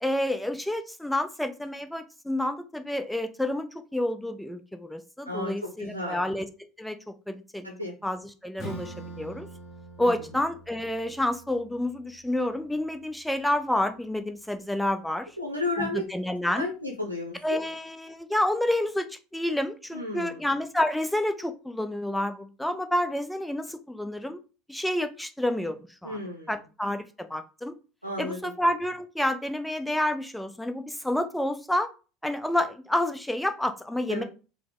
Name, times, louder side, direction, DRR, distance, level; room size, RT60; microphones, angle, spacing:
voice 1, 0.0-6.5 6.8-7.7 8.0-9.5 10.0-15.3 15.8-16.7 17.4-24.4 24.7-26.2 26.5-27.8 28.2-31.9 32.2-34.2, left 1 dB, 5° left, 8 dB, 0.5 m, -29 dB
voice 2, 5.2-6.2 7.6-7.9 10.0-10.3 15.4-16.0 16.5-17.6 19.9-20.5 26.0-26.5 28.0-28.5 34.1-34.2, left 2 dB, 90° left, 0 dB, 0.6 m, -33 dB
Acoustic guitar / Strum, 8.6-13.8, right 2 dB, 20° left, 1.6 m, -45 dB
4.6 x 2.0 x 3.8 m, 0.33 s
figure-of-eight pair, 70°, 0 cm